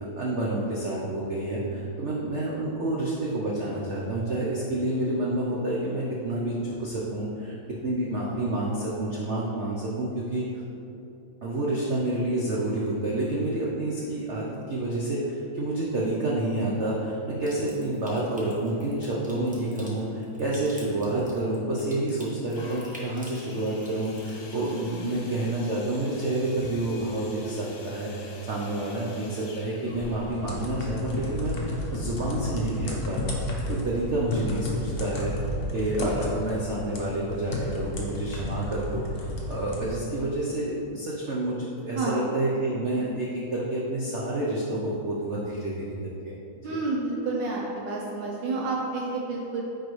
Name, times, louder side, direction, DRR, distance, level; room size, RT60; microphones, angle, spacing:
voice 1, 0.0-7.5 7.8-10.4 11.4-31.6 31.9-33.4 33.7-35.3 35.7-45.9 46.2-46.3 46.7-46.8, right 1 dB, 85° right, -5 dB, 0.6 m, -29 dB
Water tap faucet / Sink (filling or washing) / Trickle dribble, 17.4-24.4, equal, 15° right, 0.3 m, -49 dB
sound 1, 22.5-32.2 33.0-33.1, left 2 dB, 70° left, 1.6 m, -48 dB
sound 2, 29.9-39.9, left 1 dB, 50° left, 1.0 m, -32 dB
voice 2, 41.9-42.3 46.6-49.7, right 3 dB, 70° right, -3 dB, 1.3 m, -30 dB
9.2 x 4.5 x 3.2 m, 2.8 s
omnidirectional pair, 2.2 m